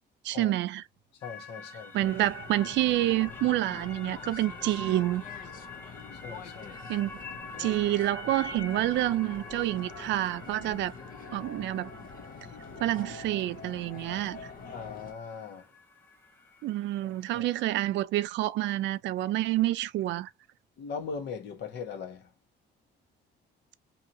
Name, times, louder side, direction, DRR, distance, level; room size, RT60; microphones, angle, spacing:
voice 1, 0.2-0.8 1.9-5.2 6.9-7.1 7.6-10.9 11.3-11.9 12.8-14.4 16.6-20.3, right 15 dB, 85° right, 0.4 m, -28 dB
voice 2, 1.1-2.1 6.2-6.8 14.7-15.7 17.0-17.5 20.8-22.3, left 6 dB, 70° left, 1.1 m, -40 dB
sound 1, 1.2-17.6, left 2 dB, 10° left, 0.7 m, -46 dB
sound 2, 2.0-15.1, left 4 dB, 50° left, 0.7 m, -45 dB
2.8 x 2.8 x 2.6 m
cardioid pair, 165°, 18 cm